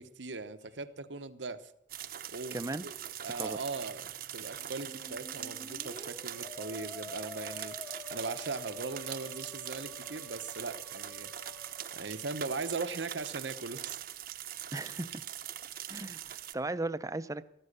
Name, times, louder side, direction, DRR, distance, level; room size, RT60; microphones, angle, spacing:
voice 1, 0.0-1.7 2.3-2.9 3.2-7.8 8.1-11.3 11.9-14.0, right 3 dB, 85° right, 11 dB, 1.0 m, -39 dB
sound 1, 0.6-5.1 5.5-5.8 7.5-7.7 9.0-9.4 10.6-10.9, right 2 dB, 65° left, 4.0 m, -66 dB
sound 2, 1.9-16.5, right 11 dB, 55° right, 0.8 m, -42 dB
voice 2, 2.5-2.8 3.3-3.6 14.7-15.2 15.9-17.4, right 2 dB, 20° right, 13 dB, 0.6 m, -37 dB
Musical instrument, 4.5-12.6, left 4 dB, 20° left, 1.3 m, -49 dB
15.0 x 13.5 x 6.7 m, 0.73 s
head